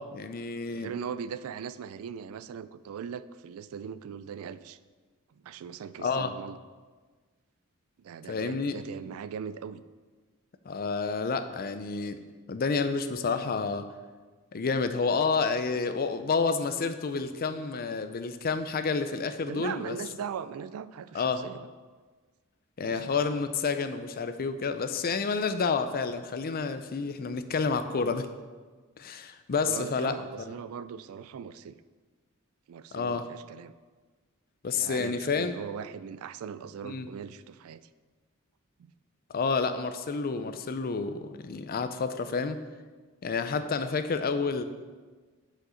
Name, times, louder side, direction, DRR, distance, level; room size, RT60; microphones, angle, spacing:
voice 1, 0.0-0.9 6.0-6.3 8.3-8.8 10.6-12.2 12.5-13.9 14.5-20.0 21.1-21.5 22.8-28.3 29.0-30.2 30.5-30.6 32.9-33.3 34.6-35.6 36.8-37.1 39.3-42.6 43.2-44.6, left 4 dB, 40° left, 10 dB, 0.5 m, -29 dB
voice 2, 0.7-4.8 5.4-6.6 8.0-9.8 19.5-21.7 22.8-23.2 29.6-31.7 32.7-33.7 34.7-37.8, right 7 dB, 65° right, 13 dB, 0.3 m, -39 dB
6.4 x 5.1 x 5.6 m, 1.4 s
head